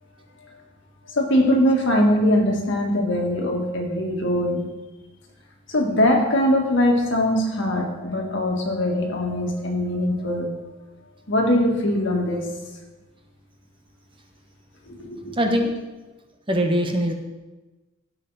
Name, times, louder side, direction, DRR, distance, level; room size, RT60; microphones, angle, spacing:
voice 1, 1.1-4.7 5.7-10.5 11.3-12.5 14.9-15.4, left 1 dB, 60° left, 1 dB, 1.9 m, -21 dB
voice 2, 15.4-15.7 16.5-17.1, equal, 25° right, 2 dB, 1.1 m, -21 dB
16.5 x 5.7 x 4.1 m, 1.1 s
head